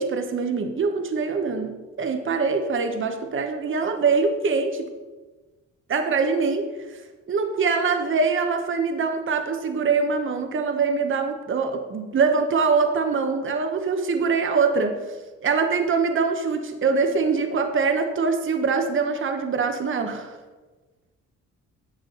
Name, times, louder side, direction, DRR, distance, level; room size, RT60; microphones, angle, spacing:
voice 1, 0.0-4.9 5.9-7.0 7.3-15.0 15.4-20.4, right 4 dB, 40° right, 6 dB, 1.1 m, -23 dB
11.0 x 7.9 x 3.9 m, 1.3 s
cardioid pair, 90°, 30 cm